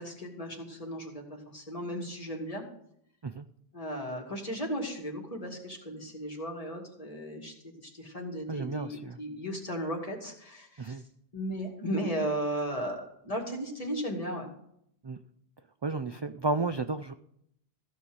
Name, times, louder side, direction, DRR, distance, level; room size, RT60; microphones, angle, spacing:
voice 1, 0.0-2.6 3.7-7.5 7.8-11.0 11.3-14.5, equal, 35° left, 0 dB, 2.6 m, -35 dB
voice 2, 8.5-9.2 10.8-11.0 15.0-15.2 15.8-17.1, right 3 dB, 40° right, 10 dB, 0.4 m, -32 dB
15.5 x 5.7 x 8.0 m, 0.71 s
omnidirectional pair, 1.1 m